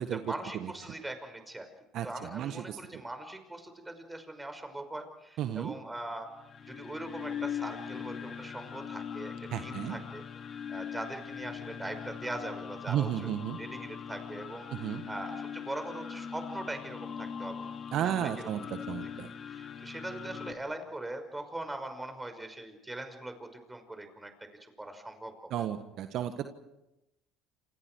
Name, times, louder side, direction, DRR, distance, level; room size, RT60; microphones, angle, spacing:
voice 1, 0.2-1.7 2.0-6.3 6.7-9.3 9.6-10.2 10.7-17.6 18.0-18.5 19.5-24.3 24.6-25.7, right 1 dB, 10° right, 7 dB, 5.6 m, -41 dB
voice 2, 2.3-2.8 5.4-5.7 9.5-10.0 12.9-13.6 14.7-15.0 17.9-19.3 25.5-26.5, right 10 dB, 60° right, 8 dB, 1.5 m, -33 dB
sound 1, 6.3-20.5, left 7 dB, 45° left, 3.3 m, -41 dB
28.0 x 27.5 x 4.7 m, 0.91 s
hypercardioid pair, 65°, 0 cm